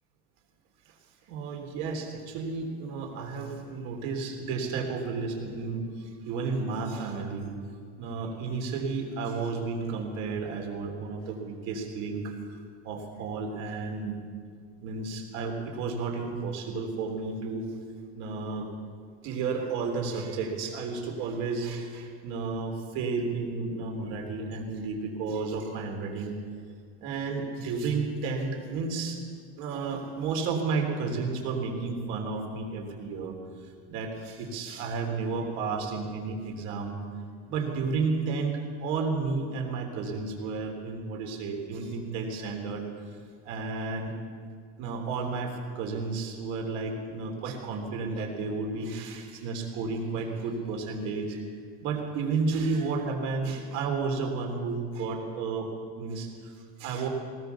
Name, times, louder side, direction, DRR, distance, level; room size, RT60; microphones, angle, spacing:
voice 1, 1.3-7.5 8.0-12.4 12.8-14.1 14.8-17.7 18.1-18.7 19.2-26.4 27.0-29.2 29.6-33.3 33.6-37.0 37.5-42.9 43.1-43.2 43.4-44.1 44.8-51.4 51.8-55.7 56.0-57.1, right 4 dB, 50° right, 3 dB, 3.6 m, -32 dB
20.0 x 19.5 x 7.0 m, 2.2 s
cardioid pair, 170°, 33 cm